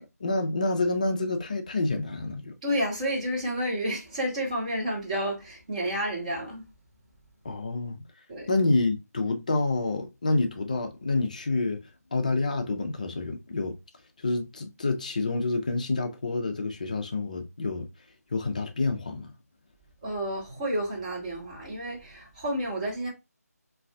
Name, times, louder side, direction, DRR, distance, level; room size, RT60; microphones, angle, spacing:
voice 1, 0.0-2.5 7.4-8.0 8.5-11.8 12.1-13.8 14.2-17.9 18.3-19.3, left 3 dB, 25° left, 0.4 m, -28 dB
voice 2, 2.6-6.6 8.3-8.5 20.0-23.1, equal, 25° right, 1.0 m, -30 dB
2.6 x 2.3 x 3.2 m
figure-of-eight pair, 160°, 9 cm